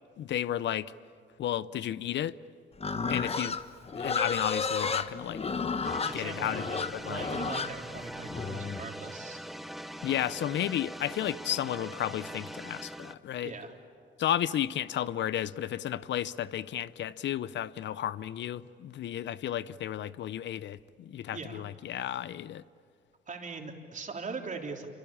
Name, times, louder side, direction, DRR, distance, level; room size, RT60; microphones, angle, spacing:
voice 1, 0.2-0.9 1.4-2.4 3.1-3.6 4.0-5.4 6.1-6.7 6.9-7.2 10.0-13.5 14.2-22.6, left 11 dB, 65° left, 0.7 m, -33 dB
Livestock farm animals working animals, 2.8-8.8, left 5 dB, 30° left, 1.2 m, -32 dB
sound 1, 5.8-13.1, equal, ahead, 1.0 m, -42 dB
voice 2, 6.0-9.4 13.4-13.7 21.3-21.7 23.3-24.9, right 4 dB, 40° right, 3.6 m, -40 dB
26.5 x 25.0 x 8.7 m
cardioid pair, 90°, 20 cm